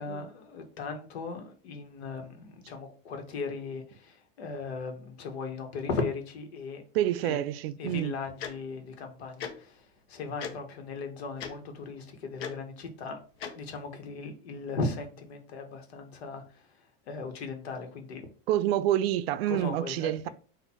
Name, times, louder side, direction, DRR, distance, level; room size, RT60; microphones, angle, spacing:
voice 1, 0.0-6.8 7.2-7.4 7.8-13.2 13.5-18.2 19.5-20.3, left 4 dB, 85° left, 1.3 m, -37 dB
voice 2, 6.9-8.1 18.5-20.3, right 12 dB, 70° right, 0.5 m, -28 dB
Tick-tock, 8.4-8.5 9.4-9.5 10.4-10.5 11.4-11.5 12.4-12.5 13.4-13.5, left 7 dB, 70° left, 1.0 m, -36 dB
4.3 x 2.5 x 4.3 m
supercardioid pair, 160°, 31 cm